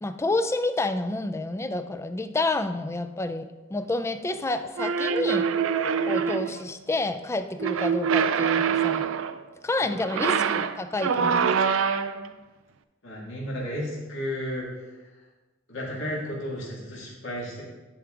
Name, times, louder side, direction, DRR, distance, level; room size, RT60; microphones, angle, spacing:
voice 1, 0.0-5.5 6.1-9.0 9.6-11.6, left 2 dB, 15° left, 9 dB, 0.3 m, -29 dB
sound 1, 4.8-6.6 7.6-9.4 10.0-12.3, right 6 dB, 75° right, 0.4 m, -25 dB
voice 2, 13.0-14.7 15.7-17.6, equal, 70° left, -5 dB, 2.2 m, -33 dB
10.0 x 4.7 x 3.8 m, 1.2 s
head